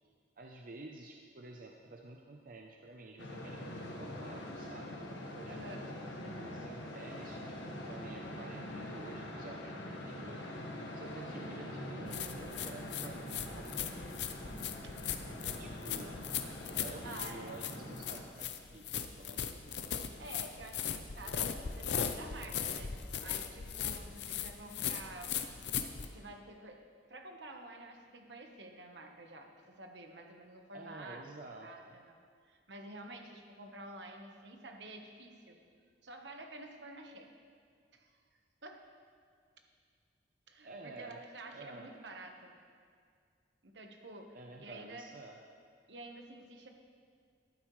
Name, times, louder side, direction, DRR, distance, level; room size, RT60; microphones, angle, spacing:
voice 1, 0.4-5.6 6.2-10.4 10.9-14.6 15.3-16.2 16.8-19.5 19.8-20.1 30.7-32.0 40.6-41.2 41.5-41.9 44.3-45.4, right 2 dB, 50° right, 1 dB, 0.6 m, -51 dB
sound 1, 3.2-18.2, left 1 dB, 90° left, 1.4 m, -44 dB
voice 2, 5.5-5.9 17.0-17.5 20.2-22.9 23.2-25.3 26.0-26.8 27.1-29.5 29.8-31.2 31.6-32.2 32.4-35.6 36.0-37.3 37.9-38.1 38.6-38.8 40.5-42.5 43.6-45.0 45.9-46.7, right 2 dB, 70° right, 3 dB, 1.2 m, -49 dB
sound 2, 8.9-18.4, equal, 20° left, 2.5 m, -55 dB
sound 3, 12.1-26.1, left 8 dB, 65° left, 0.6 m, -39 dB
14.0 x 11.5 x 3.2 m, 2.1 s
head